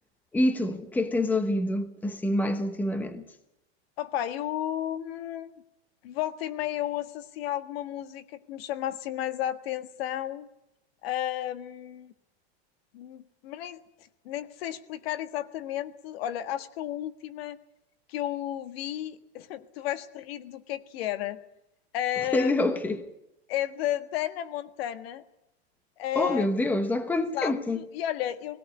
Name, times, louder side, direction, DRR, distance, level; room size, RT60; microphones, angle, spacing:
voice 1, 0.3-3.2 22.3-23.1 26.1-27.8, left 1 dB, 5° left, 1.0 m, -26 dB
voice 2, 4.0-5.6 6.0-10.5 11.0-12.1 12.9-13.8 14.2-17.6 18.1-21.4 21.9-22.5 23.5-25.2 26.0-26.5 27.2-28.6, left 12 dB, 60° left, 1.6 m, -33 dB
20.0 x 17.5 x 9.6 m
supercardioid pair, 155°, 33 cm